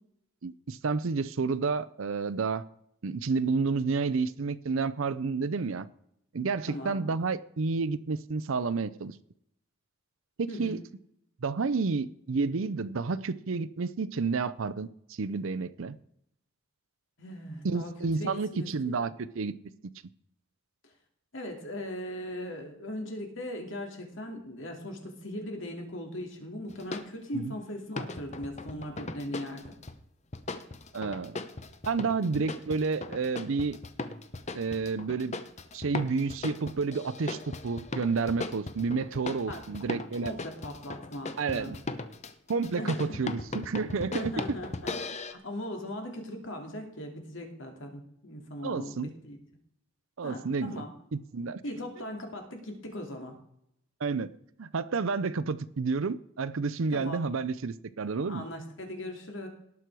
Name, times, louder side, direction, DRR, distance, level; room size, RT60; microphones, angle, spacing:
voice 1, 0.4-2.6 3.0-5.9 6.3-9.2 10.4-10.8 11.4-14.9 15.2-16.0 17.6-19.5 27.3-27.5 30.9-31.4 31.8-33.8 34.5-35.4 35.7-40.3 41.4-41.8 42.5-44.6 48.6-49.1 50.2-50.8 51.1-51.6 54.0-54.3 54.6-58.4, right 4 dB, 65° right, 0.5 m, -30 dB
voice 2, 6.7-7.1 10.5-10.8 17.2-17.9 18.2-18.9 21.3-29.7 32.2-32.5 39.5-39.6 40.2-41.7 42.7-43.1 44.1-49.4 50.2-50.9 51.6-53.4 56.9-57.2 58.3-59.5, left 1 dB, 60° left, 2.5 m, -39 dB
sound 1, 26.7-27.1 28.0-30.0 30.3-45.3, left 3 dB, 30° left, 0.8 m, -38 dB
18.0 x 6.1 x 4.7 m
head